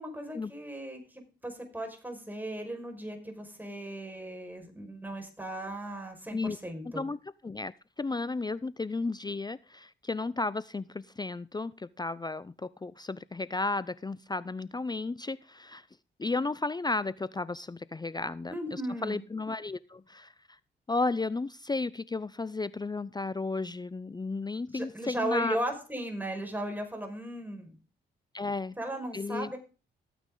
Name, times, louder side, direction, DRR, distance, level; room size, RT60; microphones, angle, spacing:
voice 1, 0.0-7.0 18.5-19.2 24.7-27.8 28.8-29.6, right 1 dB, 10° right, 3 dB, 5.3 m, -36 dB
voice 2, 6.8-15.8 16.2-20.3 20.9-25.6 28.3-28.8 29.1-29.5, left 3 dB, 20° left, 18 dB, 0.5 m, -33 dB
14.5 x 9.2 x 3.9 m, 0.33 s
supercardioid pair, 50°, 21 cm